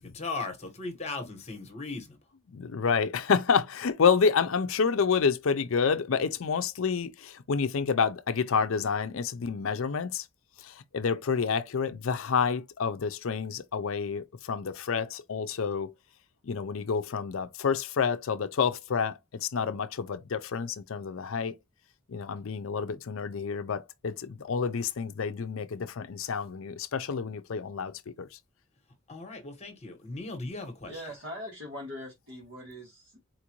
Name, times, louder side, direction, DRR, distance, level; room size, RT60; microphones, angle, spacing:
voice 1, 0.0-2.2 29.1-30.9, left 3 dB, 30° left, 1.2 m, -37 dB
voice 2, 2.5-10.2 10.6-15.9 16.4-21.5 22.1-28.3, left 6 dB, 65° left, 0.5 m, -29 dB
voice 3, 30.9-33.2, left 1 dB, 60° right, 1.5 m, -41 dB
4.4 x 2.5 x 2.9 m
head